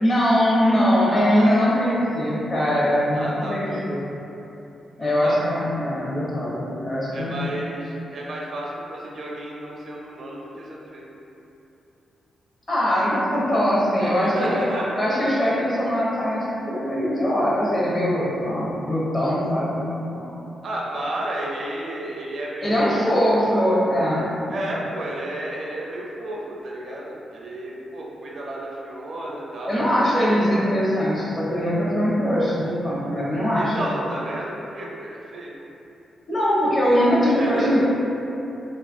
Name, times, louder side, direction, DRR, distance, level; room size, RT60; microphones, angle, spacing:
voice 1, 0.0-4.2 5.0-7.3 12.7-14.6 14.9-19.8 20.1-20.3 22.6-24.3 29.7-33.9 36.3-37.8, equal, 35° left, -8 dB, 0.9 m, -21 dB
voice 2, 1.1-1.5 3.1-3.8 5.0-5.4 7.1-11.0 14.0-15.1 20.6-23.6 24.5-30.1 33.5-35.5 37.2-37.8, right 1 dB, 60° right, -3 dB, 0.5 m, -32 dB
3.3 x 2.4 x 2.5 m, 2.9 s
cardioid pair, 90°, 0 cm